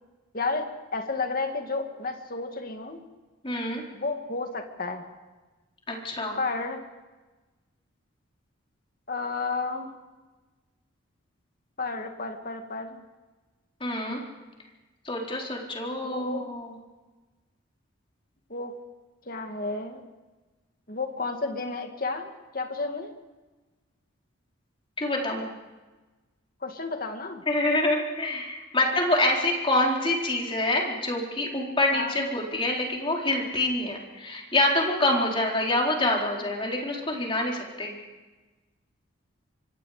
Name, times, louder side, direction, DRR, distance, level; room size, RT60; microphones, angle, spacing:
voice 1, 0.3-3.0 3.9-5.0 6.4-6.8 9.1-9.9 11.8-13.0 16.0-16.5 18.5-18.8 19.3-20.0 20.9-23.1 26.6-27.4 31.9-32.2, left 3 dB, 45° left, 5 dB, 2.2 m, -32 dB
voice 2, 3.4-3.8 5.9-6.4 13.8-14.2 15.0-16.7 25.0-25.5 27.5-38.0, left 1 dB, 25° left, -1 dB, 4.1 m, -26 dB
25.0 x 25.0 x 5.1 m, 1.2 s
head